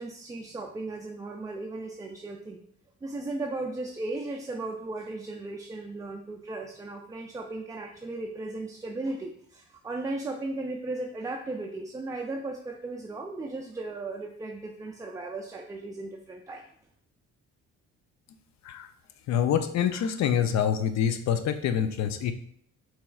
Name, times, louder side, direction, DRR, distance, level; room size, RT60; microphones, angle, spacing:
voice 1, 0.0-2.6 3.0-16.6, right 2 dB, 10° right, 1 dB, 0.3 m, -36 dB
voice 2, 19.3-22.3, left 8 dB, 65° left, 10 dB, 0.5 m, -26 dB
4.4 x 3.0 x 2.3 m, 0.65 s
cardioid pair, 90°, 30 cm